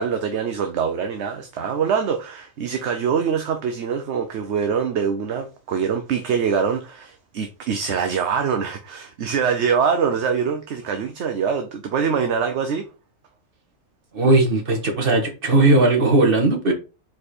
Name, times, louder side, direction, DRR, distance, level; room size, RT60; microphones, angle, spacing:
voice 1, 0.0-12.9, right 6 dB, 65° right, 1.0 m, -24 dB
voice 2, 14.1-16.7, right 2 dB, 45° right, 1.7 m, -17 dB
4.9 x 4.6 x 4.3 m
omnidirectional pair, 1.3 m